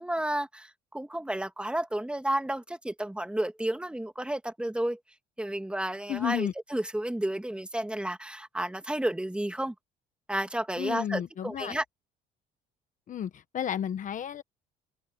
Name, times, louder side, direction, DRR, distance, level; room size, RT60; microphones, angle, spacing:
voice 1, 0.0-5.0 5.4-9.7 10.3-11.8, right 1 dB, 5° right, 2.2 m, -31 dB
voice 2, 6.1-6.5 10.8-11.8 13.1-14.4, left 10 dB, 50° left, 1.2 m, -32 dB
cardioid pair, 110°, 17 cm